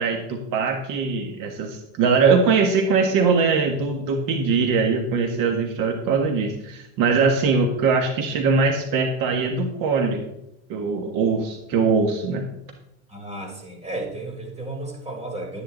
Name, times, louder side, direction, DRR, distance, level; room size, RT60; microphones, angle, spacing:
voice 1, 0.0-10.3 10.7-12.4, right 4 dB, 60° right, 4 dB, 1.6 m, -21 dB
voice 2, 13.1-15.6, right 2 dB, 15° right, 2 dB, 3.6 m, -33 dB
12.5 x 9.8 x 3.9 m, 0.84 s
supercardioid pair, 105°, 38 cm